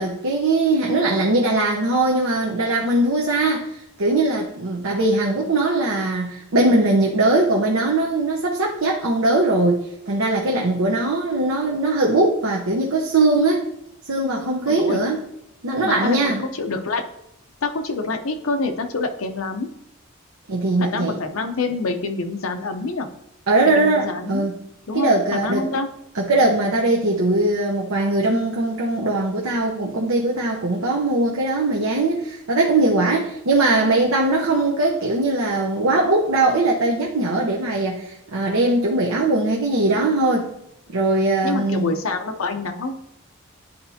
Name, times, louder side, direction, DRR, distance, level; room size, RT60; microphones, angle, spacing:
voice 1, 0.0-13.7 14.1-15.2 15.6-16.4 20.5-21.2 23.5-24.5 24.9-25.7 26.1-40.5 40.9-41.9, right 2 dB, 80° right, -1 dB, 0.8 m, -20 dB
voice 2, 14.7-15.0 15.8-17.0 17.6-19.7 20.8-23.1 23.6-24.5 24.9-25.9 41.4-42.9, left 3 dB, 80° left, 5 dB, 0.7 m, -26 dB
10.5 x 4.3 x 2.8 m, 0.77 s
head